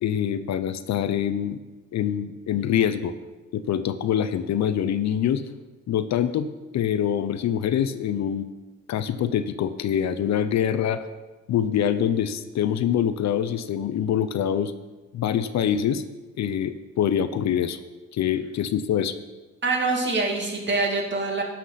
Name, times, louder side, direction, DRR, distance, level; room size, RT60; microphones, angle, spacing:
voice 1, 0.0-1.6 1.9-3.1 3.5-5.4 5.9-6.5 6.7-8.5 8.9-11.0 11.5-14.7 15.1-16.0 16.4-17.8 18.1-19.1, left 9 dB, 65° left, 12 dB, 0.7 m, -25 dB
voice 2, 19.6-21.4, right 3 dB, 35° right, 1 dB, 2.4 m, -25 dB
11.5 x 5.9 x 5.8 m, 1.2 s
cardioid pair, 90°, 30 cm